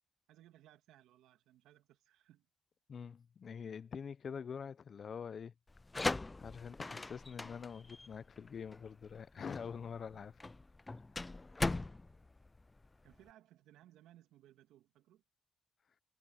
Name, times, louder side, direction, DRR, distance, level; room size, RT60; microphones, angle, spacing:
voice 1, 0.3-2.5 9.9-10.3 13.0-15.2, right 13 dB, 85° right, 2.6 m, -63 dB
voice 2, 2.9-5.5 6.4-10.3 11.1-11.3, left 6 dB, 60° left, 0.8 m, -45 dB
sound 1, 5.7-13.3, left 2 dB, 25° left, 0.3 m, -40 dB
supercardioid pair, 45°, 0 cm